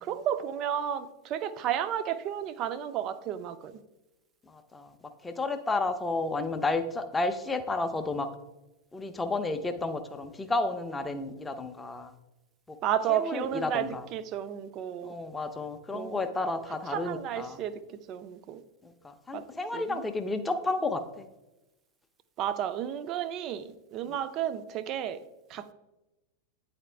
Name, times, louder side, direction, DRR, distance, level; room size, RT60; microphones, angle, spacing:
voice 1, 0.0-3.8 12.8-15.1 15.9-16.3 16.9-17.8 18.1-18.6 19.3-19.4 19.7-20.0 22.4-25.7, right 10 dB, 35° right, 13 dB, 0.4 m, -32 dB
voice 2, 4.5-4.9 5.2-8.3 8.9-12.1 12.7-12.8 13.1-14.0 15.0-17.6 18.8-21.3 24.1-24.2, left 3 dB, 10° left, 8 dB, 0.6 m, -32 dB
9.4 x 4.2 x 3.3 m, 1.0 s
figure-of-eight pair, 90°, 0 cm